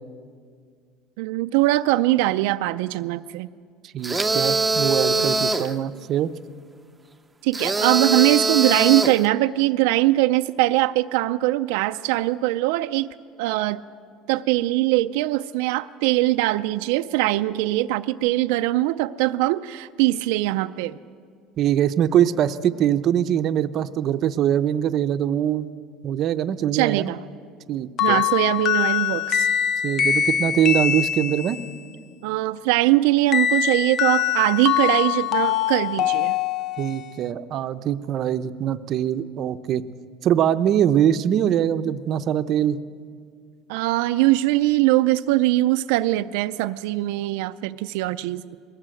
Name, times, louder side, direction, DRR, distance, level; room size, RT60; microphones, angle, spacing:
voice 1, 1.2-3.5 7.4-13.1 13.4-13.8 14.3-21.0 26.7-27.2 28.0-29.5 32.2-36.3 43.7-48.6, right 17 dB, 85° right, 9 dB, 0.4 m, -21 dB
voice 2, 3.9-6.3 21.6-25.7 26.0-27.1 27.7-28.2 29.8-31.6 36.8-39.8 40.2-42.8, right 10 dB, 40° right, 10 dB, 0.6 m, -22 dB
sound 1, 4.0-5.7 7.5-9.3, right 3 dB, 5° right, 0.7 m, -22 dB
sound 2, 28.0-31.7 33.3-37.1, left 10 dB, 35° left, 0.5 m, -23 dB
21.5 x 17.5 x 7.7 m, 2.1 s
cardioid pair, 155°, 0 cm